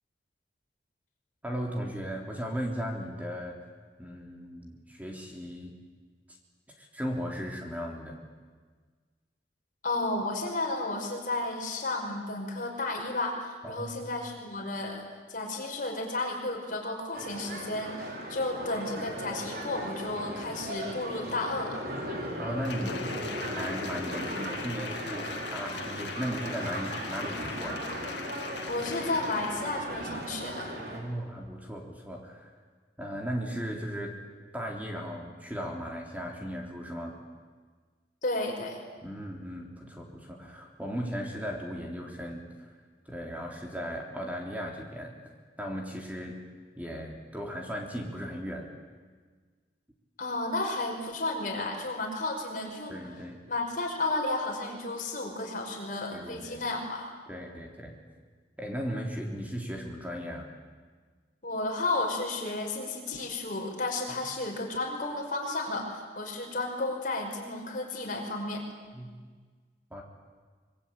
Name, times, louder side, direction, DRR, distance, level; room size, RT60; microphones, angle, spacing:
voice 1, 1.4-3.7 4.0-5.7 6.8-8.2 13.6-13.9 22.4-23.0 23.5-27.8 30.9-32.5 33.0-34.1 34.5-37.2 39.0-42.7 43.1-45.1 45.6-46.4 46.8-48.7 52.9-53.4 56.1-56.6 57.3-57.9 58.6-60.5 68.9-69.1 69.9-70.0, equal, 10° right, 0 dB, 3.6 m, -36 dB
voice 2, 9.8-15.0 15.3-18.0 18.3-21.8 28.7-30.8 38.2-38.8 50.2-52.9 53.5-57.1 61.4-68.6, left 2 dB, 50° left, 1 dB, 5.4 m, -32 dB
sound 1, 17.1-31.0, right 1 dB, 60° right, 4.9 m, -37 dB
Applause, 22.6-29.8 30.2-30.3, left 5 dB, 90° left, 2.1 m, -41 dB
25.5 x 23.0 x 9.0 m, 1.5 s
head